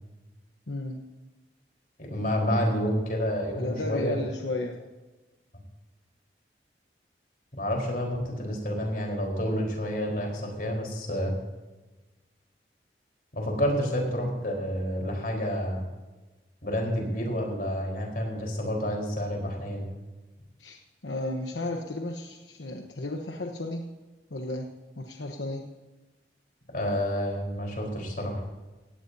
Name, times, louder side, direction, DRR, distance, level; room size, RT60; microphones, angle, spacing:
voice 1, 0.7-1.1 2.2-2.6 3.6-4.8 13.7-13.8 20.6-23.8 24.3-25.6, left 1 dB, 85° left, 2 dB, 1.1 m, -34 dB
voice 2, 2.0-4.2 7.5-11.3 13.3-15.8 16.6-19.8 26.7-28.4, equal, 50° left, 1 dB, 4.3 m, -29 dB
17.5 x 16.5 x 2.8 m, 1.2 s
head